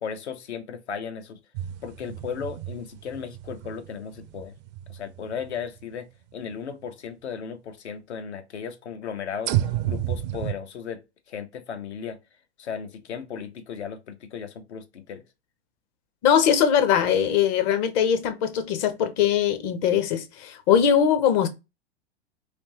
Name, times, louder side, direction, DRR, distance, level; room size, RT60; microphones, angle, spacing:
voice 1, 0.0-1.4 1.8-4.5 4.9-6.0 6.3-9.5 9.9-11.0 11.3-12.2 12.6-15.2, left 7 dB, 70° left, 0.8 m, -35 dB
sound 1, 1.5-5.8 6.5-6.6 9.5-10.5, right 12 dB, 40° right, 0.4 m, -31 dB
voice 2, 16.2-21.5, left 8 dB, 40° left, 0.7 m, -21 dB
3.4 x 2.8 x 2.9 m
figure-of-eight pair, 100°, 34 cm